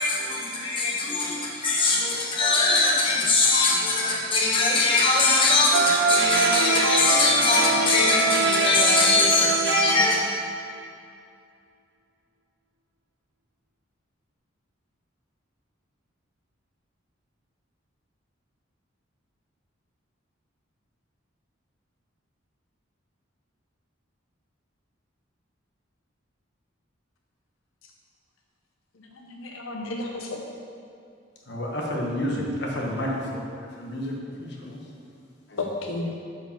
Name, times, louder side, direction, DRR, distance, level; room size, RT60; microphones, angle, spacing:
voice 1, 0.0-10.2, left 3 dB, 25° left, -4 dB, 1.1 m, -21 dB
sound 1, 5.7-10.5, right 5 dB, 55° right, 0.4 m, -25 dB
voice 2, 28.9-30.4 35.6-36.1, left 2 dB, 80° left, 1 dB, 0.7 m, -32 dB
voice 3, 31.5-33.5 33.8-34.8 35.5-35.7, equal, 55° left, -2 dB, 1.3 m, -30 dB
8.5 x 5.0 x 5.9 m, 2.4 s
head